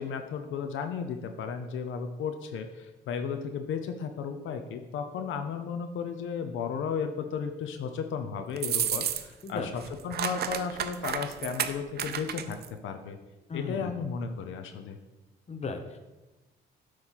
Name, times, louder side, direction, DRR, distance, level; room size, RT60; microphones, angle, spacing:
voice 1, 0.0-12.6 12.8-13.2 13.5-15.0, left 6 dB, 80° left, 6 dB, 0.6 m, -34 dB
sound 1, 8.6-9.5 9.8-12.7, right 9 dB, 55° right, 0.5 m, -31 dB
voice 2, 9.4-9.7 13.5-14.0 15.5-16.0, left 3 dB, 35° left, 7 dB, 0.8 m, -35 dB
8.1 x 3.2 x 5.7 m, 1.1 s
cardioid pair, 90°, 20 cm